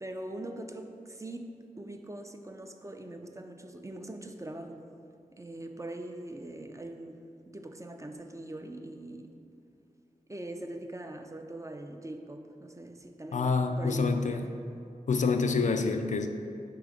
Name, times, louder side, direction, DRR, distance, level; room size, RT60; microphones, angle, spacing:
voice 1, 0.0-4.9 5.3-7.3 7.5-9.3 10.3-14.5, right 1 dB, 20° right, 4 dB, 0.5 m, -42 dB
voice 2, 13.3-14.5 15.1-16.3, left 4 dB, 60° left, 6 dB, 0.4 m, -27 dB
5.0 x 3.8 x 4.9 m, 2.5 s
cardioid pair, 45°, 15 cm